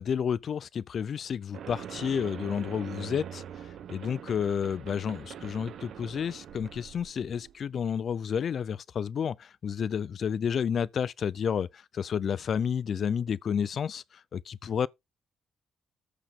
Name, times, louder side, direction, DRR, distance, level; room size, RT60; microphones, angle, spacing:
voice 1, 0.0-14.9, left 7 dB, 55° left, 0.5 m, -31 dB
sound 1, 1.5-7.6, right 9 dB, 70° right, 1.2 m, -43 dB
14.5 x 4.9 x 3.6 m
cardioid pair, 100°, 0 cm